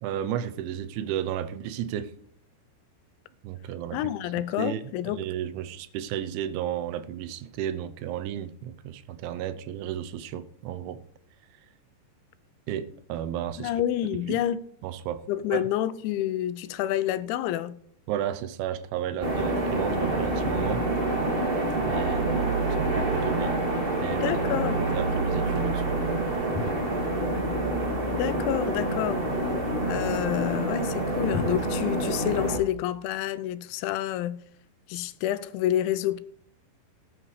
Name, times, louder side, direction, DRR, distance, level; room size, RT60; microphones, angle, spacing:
voice 1, 0.0-2.1 3.4-4.1 4.6-4.8 5.1-11.0 12.7-13.7 14.3-14.4 14.8-15.2 15.5-15.7 18.1-20.8 21.8-23.6 24.0-24.3 24.8-26.0, right 10 dB, 85° right, 3.1 m, -33 dB
voice 2, 3.9-5.3 13.6-14.6 15.3-17.7 24.1-24.8 28.0-29.3 29.9-34.4 34.9-36.2, left 12 dB, 85° left, 2.9 m, -28 dB
sound 1, 19.2-32.6, right 2 dB, 35° right, 0.9 m, -27 dB
18.5 x 9.8 x 3.2 m
omnidirectional pair, 5.2 m